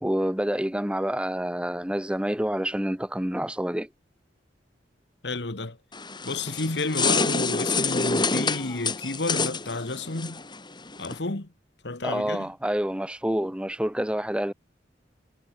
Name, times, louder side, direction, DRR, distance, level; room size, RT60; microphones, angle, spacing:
voice 1, 0.0-3.9 12.0-14.5, equal, 5° right, 0.9 m, -28 dB
voice 2, 5.2-5.8 6.2-10.4 11.0-11.5 11.8-12.5, left 2 dB, 75° left, 1.7 m, -31 dB
sound 1, 5.9-11.2, left 4 dB, 25° left, 3.0 m, -27 dB
head